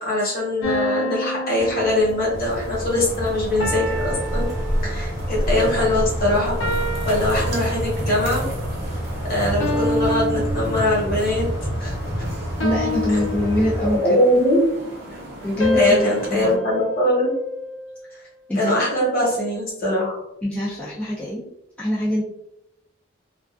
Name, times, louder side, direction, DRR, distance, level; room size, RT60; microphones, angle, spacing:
voice 1, 0.0-4.5 4.8-6.8 7.0-8.4 9.3-11.5 11.8-11.9 13.1-13.2 14.0-14.6 15.1-15.2 15.7-17.3 18.5-20.2, left 1 dB, 45° left, -4 dB, 1.0 m, -22 dB
sound 1, 0.6-2.5 3.6-5.3 6.6-8.2 9.6-11.3 12.6-14.2 15.6-17.9, left 1 dB, 70° left, 0.6 m, -28 dB
sound 2, 1.6-14.0, equal, 20° right, 0.8 m, -27 dB
sound 3, 2.4-16.5, right 1 dB, 50° right, 0.5 m, -40 dB
voice 2, 12.6-14.2 15.4-16.0 16.3-16.6 18.5-18.7 20.4-21.4 21.8-22.2, equal, 5° left, -9 dB, 0.4 m, -23 dB
2.3 x 2.3 x 2.4 m, 0.85 s
head